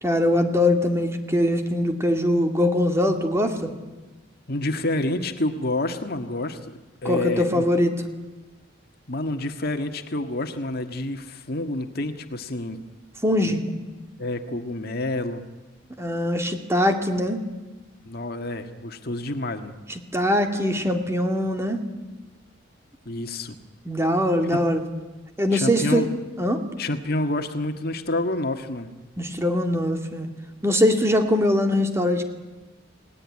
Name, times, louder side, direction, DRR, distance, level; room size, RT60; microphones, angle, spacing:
voice 1, 0.0-3.7 7.0-7.9 13.2-13.6 16.0-17.4 19.9-21.8 23.9-24.8 25.4-26.1 26.4-26.6 29.2-30.3 30.6-32.2, left 1 dB, 15° right, 5 dB, 2.4 m, -22 dB
voice 2, 4.5-7.6 9.1-12.8 13.4-13.6 14.2-15.4 18.0-19.8 23.1-23.6 24.5-24.6 25.5-26.1 26.8-28.9, left 1 dB, 50° left, 7 dB, 1.7 m, -28 dB
30.0 x 19.0 x 9.8 m, 1.2 s
head